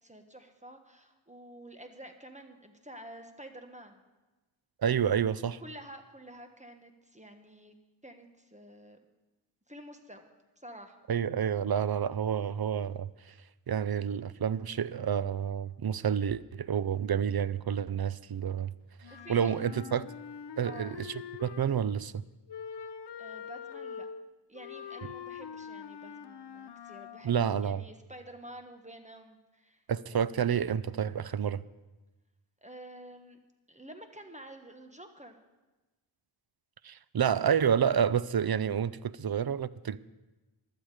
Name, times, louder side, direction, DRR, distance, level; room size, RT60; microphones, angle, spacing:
voice 1, 0.0-4.0 5.6-7.7 8.0-9.0 9.7-10.2 10.6-11.0 19.1-19.7 20.6-21.0 23.2-24.1 24.5-27.4 27.6-30.3 32.6-33.4 33.7-35.4, right 1 dB, 15° right, 1.4 m, -49 dB
voice 2, 4.8-5.6 11.1-13.1 13.7-18.7 19.3-20.0 20.6-22.2 27.2-27.8 29.9-31.6 36.8-40.0, right 8 dB, 50° right, 0.5 m, -29 dB
Wind instrument woodwind instrument, 19.0-21.9 22.5-27.3, left 7 dB, 60° left, 0.6 m, -44 dB
15.5 x 12.0 x 4.9 m
wide cardioid pair, 55°, 47 cm